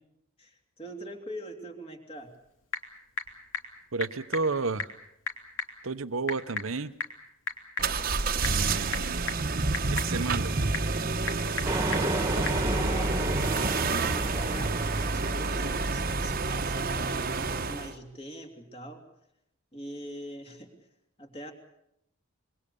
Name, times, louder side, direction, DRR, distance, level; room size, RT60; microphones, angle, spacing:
voice 1, 0.4-2.3 12.0-13.2 14.1-19.0 19.7-20.7 21.2-21.5, right 1 dB, 30° left, 4 dB, 3.0 m, -43 dB
Typing / Telephone, 2.2-12.7, left 4 dB, 75° left, 3.3 m, -39 dB
voice 2, 3.9-4.9 5.8-6.9 8.4-9.4 9.9-10.5, right 3 dB, 75° right, 12 dB, 1.0 m, -31 dB
sound 1, 7.8-17.9, right 3 dB, 45° right, 1.2 m, -29 dB
sound 2, 11.6-16.1, right 2 dB, 15° right, 1.8 m, -32 dB
25.5 x 22.5 x 7.0 m, 0.78 s
head